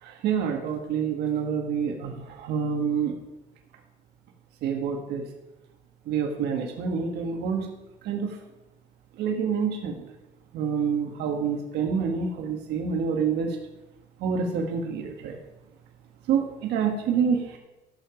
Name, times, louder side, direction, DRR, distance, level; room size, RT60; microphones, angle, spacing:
voice 1, 0.0-3.2 4.6-5.2 6.1-7.7 8.0-8.3 9.2-10.1 10.5-13.6 14.2-15.4 16.3-17.6, right 6 dB, 80° right, 1 dB, 1.7 m, -27 dB
14.0 x 6.9 x 5.2 m, 0.98 s
cardioid pair, 110°, 17 cm